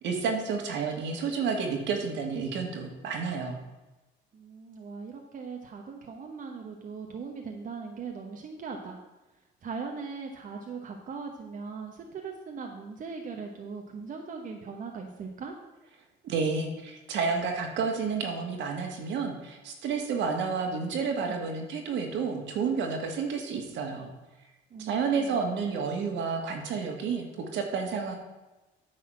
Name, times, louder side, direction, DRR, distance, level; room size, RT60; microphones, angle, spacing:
voice 1, 0.0-3.6 16.2-24.1 24.8-28.1, right 5 dB, 70° right, 3 dB, 1.9 m, -30 dB
voice 2, 4.3-9.0 9.6-15.6 24.7-25.4, right 5 dB, 45° right, 2 dB, 1.1 m, -39 dB
9.8 x 4.2 x 7.4 m, 1.1 s
cardioid pair, 105°, 20 cm